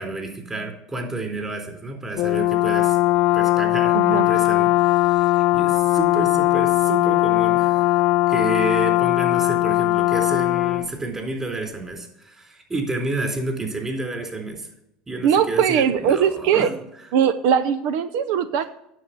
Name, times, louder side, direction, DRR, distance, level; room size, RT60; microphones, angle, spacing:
voice 1, 0.0-3.0 3.3-7.9 8.3-14.7 15.1-16.7, right 2 dB, 20° right, 2 dB, 3.9 m, -30 dB
Brass instrument, 2.2-10.9, left 18 dB, 65° left, 0.4 m, -19 dB
voice 2, 3.9-4.3 15.2-16.7 17.1-18.6, right 8 dB, 75° right, 11 dB, 0.7 m, -20 dB
9.5 x 7.0 x 6.9 m, 0.81 s
supercardioid pair, 115°, 3 cm